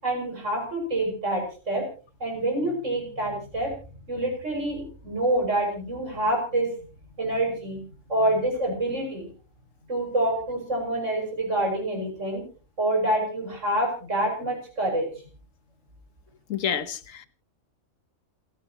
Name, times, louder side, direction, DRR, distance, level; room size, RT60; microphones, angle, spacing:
voice 1, 0.0-1.8 2.2-3.7 4.1-6.7 7.2-7.8 8.1-9.3 9.9-12.4 12.8-15.1, right 1 dB, 70° right, 6.7 m, -26 dB
voice 2, 16.5-17.3, left 8 dB, 85° left, 1.5 m, -29 dB
28.0 x 10.5 x 3.0 m
omnidirectional pair, 1.3 m